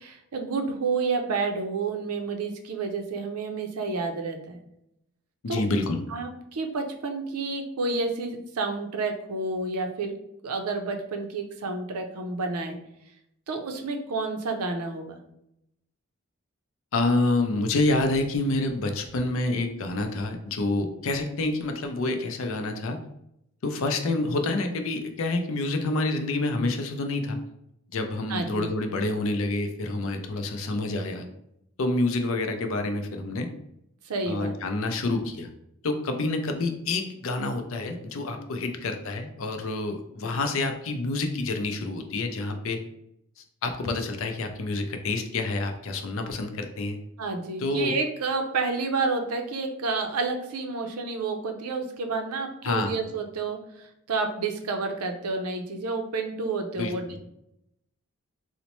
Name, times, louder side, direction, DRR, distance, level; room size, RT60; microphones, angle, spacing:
voice 1, 0.0-4.6 5.5-5.6 6.1-10.1 10.4-12.8 13.5-15.2 28.3-28.7 34.0-34.6 47.2-57.2, right 3 dB, 85° right, 5 dB, 0.5 m, -30 dB
voice 2, 5.4-6.0 16.9-23.0 23.6-27.4 27.9-31.3 31.8-33.5 34.3-35.5 35.8-42.8 43.6-47.0 47.6-48.0 52.6-53.0 56.8-56.9, left 2 dB, 65° left, 5 dB, 0.5 m, -28 dB
4.0 x 2.1 x 2.9 m, 0.79 s
head